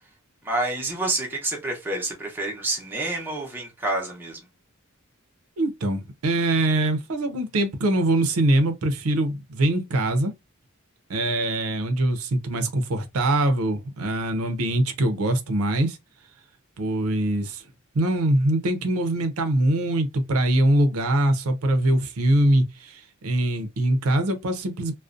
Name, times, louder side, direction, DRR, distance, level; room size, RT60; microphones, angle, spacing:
voice 1, 0.4-4.4, right 2 dB, 10° right, 0.7 m, -28 dB
voice 2, 5.6-10.3 11.1-16.0 16.8-17.6 17.9-24.9, right 1 dB, 90° right, 0.5 m, -23 dB
2.4 x 2.1 x 2.4 m
head